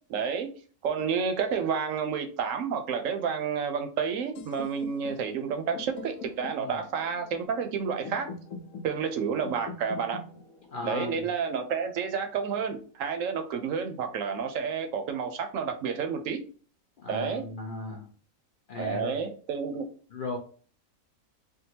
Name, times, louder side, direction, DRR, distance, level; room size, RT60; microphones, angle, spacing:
voice 1, 0.1-0.5 0.8-8.3 8.8-10.2 10.8-16.4 17.1-17.4 18.8-19.8, right 6 dB, 70° right, 6 dB, 0.9 m, -30 dB
sound 1, 4.4-12.3, left 4 dB, 85° left, 1.1 m, -44 dB
voice 2, 10.7-11.2 17.0-18.1 18.7-19.2 20.1-20.4, left 2 dB, 50° left, 1 dB, 0.6 m, -36 dB
3.7 x 2.2 x 2.7 m, 0.41 s
omnidirectional pair, 1.5 m